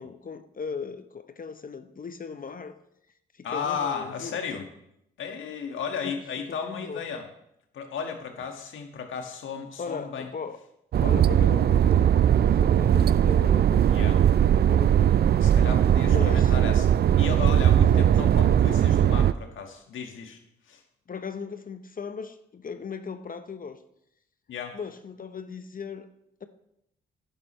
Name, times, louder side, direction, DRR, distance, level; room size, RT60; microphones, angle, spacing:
voice 1, 0.0-2.8 3.3-4.4 6.0-6.2 6.5-7.0 9.8-10.6 11.0-15.3 16.0-16.5 17.8-18.1 21.1-23.8 24.7-26.1, left 5 dB, 40° left, 0.9 m, -38 dB
voice 2, 3.4-4.7 5.2-7.3 7.7-10.3 13.9-14.2 15.4-20.4 20.7-20.8 24.5-24.8, left 6 dB, 70° left, 1.7 m, -34 dB
sound 1, 10.9-19.3, right 10 dB, 50° right, 0.5 m, -20 dB
11.5 x 11.0 x 3.2 m
supercardioid pair, 45°, 21 cm